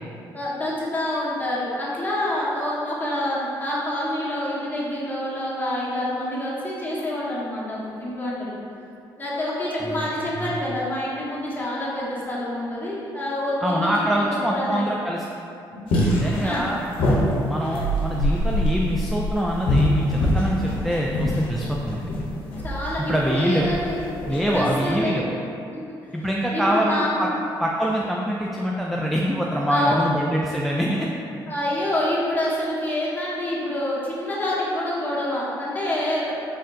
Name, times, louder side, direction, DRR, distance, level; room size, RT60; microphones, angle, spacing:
voice 1, 0.3-8.6 9.2-14.2 14.5-14.8 15.7-15.8 16.4-16.7 22.3-24.0 24.3-25.3 25.7-25.8 26.2-26.3 26.5-27.4 29.7-30.1 31.5-36.3, left 1 dB, 20° left, -7 dB, 1.2 m, -27 dB
voice 2, 13.6-15.2 16.0-16.8 17.5-22.1 23.0-23.7 24.3-25.2 26.1-27.3 27.6-31.1, equal, ahead, -2 dB, 0.3 m, -24 dB
sound 1, 15.9-24.9, left 1 dB, 80° left, 0.8 m, -24 dB
4.2 x 3.7 x 2.5 m, 2.7 s
cardioid pair, 75°, 9 cm